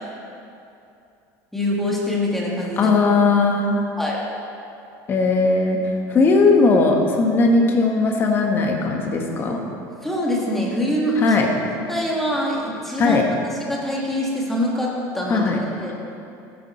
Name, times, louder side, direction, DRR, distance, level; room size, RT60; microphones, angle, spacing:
voice 1, 1.5-2.9 4.0-4.2 10.0-11.4 11.9-13.2 13.7-15.9, left 1 dB, 5° left, -4 dB, 1.8 m, -24 dB
voice 2, 2.8-3.8 5.1-5.8 6.1-9.6 11.2-11.5 13.0-13.2 15.3-15.6, left 3 dB, 30° left, 2 dB, 1.4 m, -18 dB
13.5 x 10.5 x 4.4 m, 2.6 s
cardioid pair, 165°, 8 cm